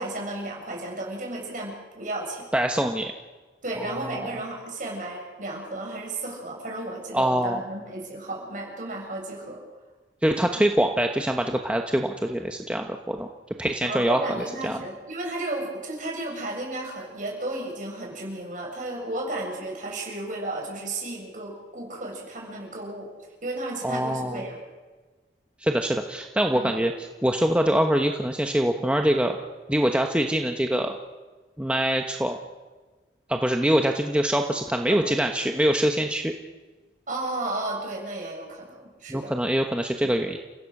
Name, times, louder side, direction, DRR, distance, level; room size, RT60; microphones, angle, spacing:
voice 1, 0.0-2.5 3.6-9.6 13.8-23.1 23.4-24.6 26.5-26.7 34.9-35.1 37.1-39.3, right 2 dB, 45° right, -1 dB, 7.4 m, -33 dB
voice 2, 2.5-3.1 3.8-4.3 7.1-7.6 10.2-13.3 13.6-14.8 23.8-24.4 25.6-29.4 29.7-31.0 31.6-32.4 33.3-36.3 39.1-40.4, right 1 dB, 5° right, 3 dB, 1.1 m, -24 dB
30.0 x 16.5 x 6.7 m, 1.3 s
head